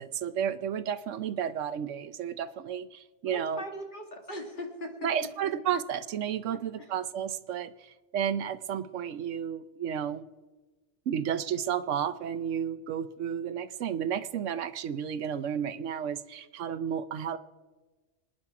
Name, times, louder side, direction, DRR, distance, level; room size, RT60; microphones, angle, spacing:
voice 1, 0.0-3.6 5.0-10.3 11.1-17.4, right 8 dB, 85° right, 11 dB, 1.1 m, -32 dB
voice 2, 3.3-4.9 6.5-6.9, equal, 40° left, 2 dB, 2.3 m, -40 dB
25.5 x 10.0 x 4.8 m, 1.2 s
omnidirectional pair, 1.2 m